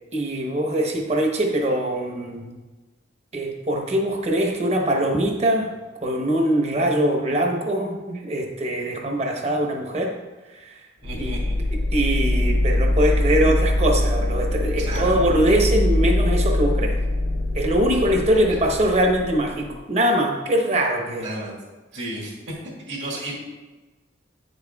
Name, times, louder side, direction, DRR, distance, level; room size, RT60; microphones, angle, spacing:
voice 1, 0.1-2.5 3.3-5.7 6.0-10.1 10.5-10.8 11.2-11.3 11.9-17.0 17.5-21.3, right 1 dB, 35° right, 1 dB, 1.0 m, -22 dB
sound 1, 11.0-19.7, left 1 dB, 65° left, 0.7 m, -23 dB
voice 2, 11.0-11.5 14.8-15.1 21.2-21.6 21.9-22.5 22.9-23.4, right 1 dB, 60° right, -4 dB, 2.2 m, -32 dB
9.2 x 6.7 x 2.3 m, 1.2 s
head